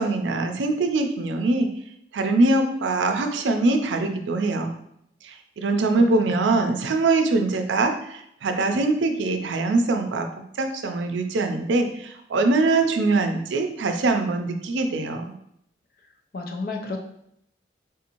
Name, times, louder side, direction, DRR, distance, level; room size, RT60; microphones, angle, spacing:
voice 1, 0.0-1.7 2.1-4.7 5.2-10.3 10.6-15.2, right 3 dB, 85° right, 5 dB, 0.4 m, -23 dB
voice 2, 16.3-17.0, left 3 dB, 55° left, 2 dB, 0.5 m, -31 dB
3.6 x 2.6 x 2.9 m, 0.74 s
head